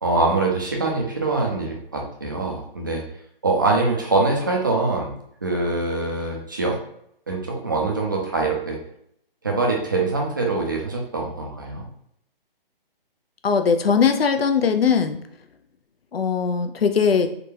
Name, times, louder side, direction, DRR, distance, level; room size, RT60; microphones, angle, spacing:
voice 1, 0.0-3.0 3.4-5.1 5.4-6.8 7.3-8.8 9.4-11.9, right 3 dB, 20° right, 0 dB, 0.4 m, -23 dB
voice 2, 13.4-15.2 16.1-17.3, left 6 dB, 80° left, 7 dB, 0.5 m, -20 dB
3.7 x 2.3 x 2.8 m, 0.69 s
figure-of-eight pair, 145°, 29 cm